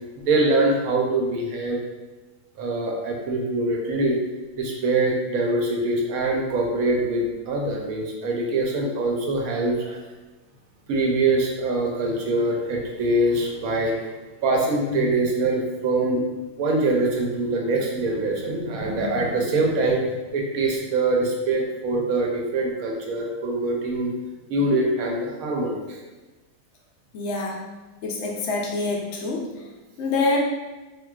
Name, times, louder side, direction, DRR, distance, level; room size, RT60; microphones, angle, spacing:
voice 1, 0.2-1.8 2.6-4.2 4.6-10.0 10.9-13.9 14.4-16.2 16.6-20.0 20.3-24.1 24.5-26.0, right 2 dB, 70° right, -1 dB, 1.0 m, -23 dB
voice 2, 27.1-27.6 28.0-29.5 30.0-30.4, left 3 dB, 65° left, -2 dB, 0.7 m, -25 dB
3.7 x 2.5 x 2.3 m, 1.2 s
omnidirectional pair, 1.6 m